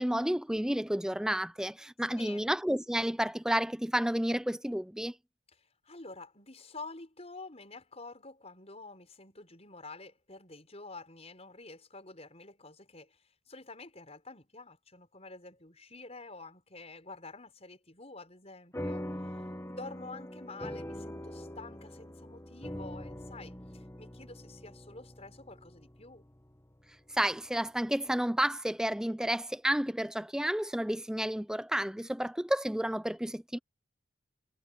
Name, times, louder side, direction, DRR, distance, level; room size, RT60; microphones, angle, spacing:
voice 1, 0.0-5.1 27.1-33.6, equal, 5° right, 0.5 m, -31 dB
voice 2, 2.1-2.5 5.6-13.2 13.5-19.1 19.7-26.2, left 3 dB, 30° left, 6.3 m, -48 dB
sound 1, 18.7-27.5, equal, 15° left, 1.2 m, -43 dB
head